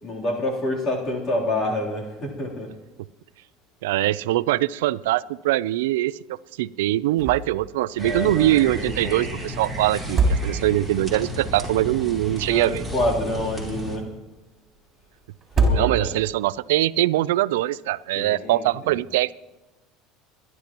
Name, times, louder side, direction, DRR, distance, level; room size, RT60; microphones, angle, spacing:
voice 1, 0.0-2.7 8.0-9.3 12.4-14.1 15.5-16.1 18.1-18.9, left 1 dB, 35° left, -2 dB, 3.3 m, -28 dB
voice 2, 3.8-12.8 15.7-19.3, right 15 dB, 90° right, 19 dB, 0.4 m, -22 dB
sound 1, 7.2-7.7 8.0-8.1 9.9-11.0 12.7-13.6 15.4-16.4, right 2 dB, 30° right, 3.7 m, -24 dB
sound 2, 8.0-14.0, right 1 dB, 5° left, 4.3 m, -33 dB
29.5 x 12.0 x 3.0 m, 1.1 s
supercardioid pair, 120°, 0 cm